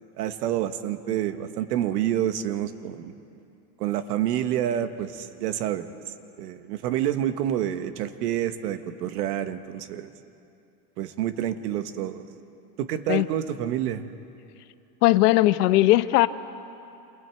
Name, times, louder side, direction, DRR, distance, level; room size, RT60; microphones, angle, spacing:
voice 1, 0.2-3.1 3.8-5.9 6.4-10.1 11.0-12.2 12.8-14.0, right 11 dB, 90° right, 9 dB, 1.5 m, -28 dB
voice 2, 15.0-16.3, left 17 dB, 80° left, 13 dB, 1.0 m, -18 dB
28.0 x 27.5 x 4.6 m, 2.6 s
supercardioid pair, 180°, 46 cm